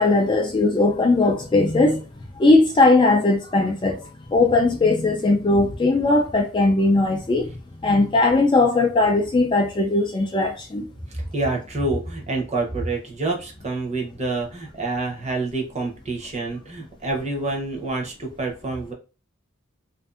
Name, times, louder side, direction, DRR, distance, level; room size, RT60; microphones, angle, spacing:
voice 1, 0.0-2.0 2.4-4.0 4.3-7.4 7.8-10.8, left 2 dB, 25° left, 0.3 m, -18 dB
voice 2, 11.1-18.9, right 2 dB, 30° right, 0.7 m, -27 dB
2.5 x 2.5 x 2.4 m
head